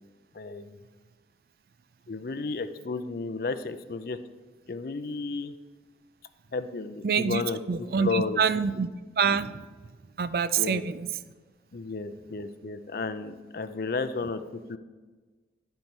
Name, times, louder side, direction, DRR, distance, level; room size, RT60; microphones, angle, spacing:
voice 1, 0.3-0.8 2.1-4.2 4.7-5.5 6.5-7.6 8.0-8.4 10.6-10.8 11.7-14.4 14.7-14.8, left 4 dB, 55° left, 11 dB, 0.5 m, -32 dB
voice 2, 7.0-7.4 7.7-8.9 9.2-9.7 10.2-11.1, right 6 dB, 55° right, 14 dB, 0.4 m, -26 dB
11.5 x 4.5 x 5.3 m, 1.3 s
head